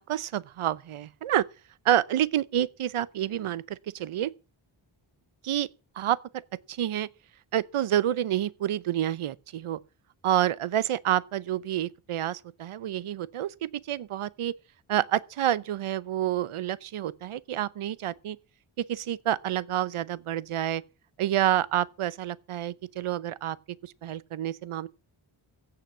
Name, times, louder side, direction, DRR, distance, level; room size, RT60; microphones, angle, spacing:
voice 1, 0.0-1.4 1.8-4.3 5.4-5.7 6.0-6.2 6.7-7.1 7.5-9.8 10.2-14.5 14.9-18.4 18.9-20.8 21.2-23.6 23.8-24.9, right 11 dB, 80° right, 0.7 m, -28 dB
16.0 x 5.8 x 7.1 m
wide cardioid pair, 145°, 50 cm